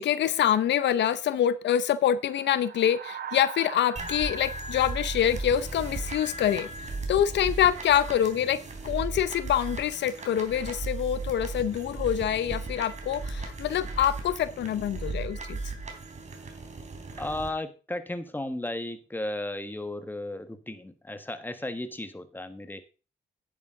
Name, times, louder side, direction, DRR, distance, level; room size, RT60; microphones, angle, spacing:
voice 1, 0.0-6.7 7.1-15.7, left 10 dB, 75° left, 15 dB, 0.7 m, -26 dB
sound 1, 2.2-6.7, right 8 dB, 65° right, 1.3 m, -43 dB
sound 2, 4.0-17.5, right 3 dB, 40° right, 3.3 m, -36 dB
voice 2, 17.2-22.8, left 1 dB, 10° left, 9 dB, 1.5 m, -35 dB
10.0 x 9.1 x 3.8 m, 0.33 s
cardioid pair, 65°, 18 cm